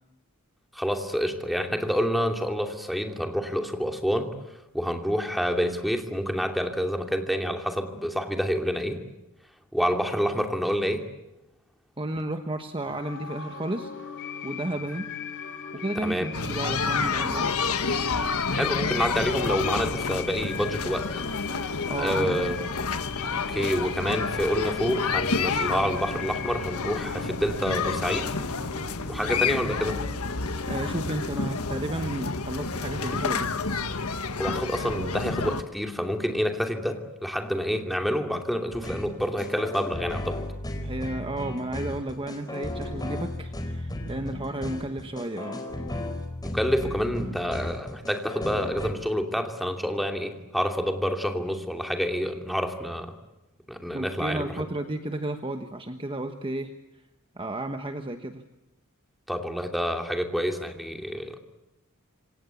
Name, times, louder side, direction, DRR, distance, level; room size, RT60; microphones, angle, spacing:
voice 1, 0.7-4.3 4.7-9.0 9.7-11.1 16.0-16.3 18.5-21.3 22.0-22.7 23.5-28.3 29.1-30.0 34.4-40.4 46.4-53.1 53.7-54.6 59.3-61.4, equal, ahead, 4 dB, 2.8 m, -28 dB
voice 2, 12.0-13.9 14.4-15.1 15.7-17.5 21.9-22.4 30.7-33.6 40.8-45.6 53.9-56.7 57.4-58.4, right 1 dB, 25° right, 6 dB, 1.3 m, -32 dB
sound 1, 12.8-32.3, left 7 dB, 60° left, 3.9 m, -39 dB
sound 2, 16.3-35.6, left 4 dB, 80° left, 1.6 m, -29 dB
sound 3, 38.7-48.9, left 1 dB, 20° left, 4.3 m, -34 dB
27.0 x 25.5 x 8.4 m, 0.94 s
head